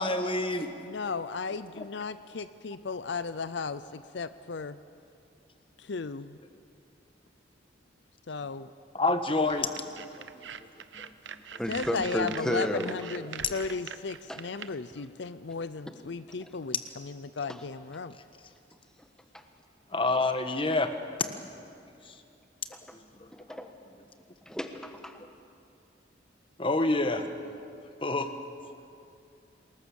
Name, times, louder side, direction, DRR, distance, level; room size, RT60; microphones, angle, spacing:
voice 1, 0.0-0.7 8.9-9.7 19.9-20.9 26.6-27.2 28.0-28.3, left 2 dB, 25° left, 8 dB, 1.3 m, -26 dB
voice 2, 0.9-4.8 5.8-6.4 8.3-8.7 11.7-18.1, left 4 dB, 65° left, 14 dB, 0.6 m, -35 dB
sound 1, 9.4-14.7, right 7 dB, 70° right, 0.9 m, -43 dB
voice 3, 11.6-12.9 14.3-14.4 16.4-16.5 17.5-17.6 19.3-19.4 22.7-22.8 23.3-23.7 24.4-25.2, equal, 5° left, 6 dB, 1.3 m, -33 dB
28.0 x 20.5 x 7.1 m, 2.5 s
head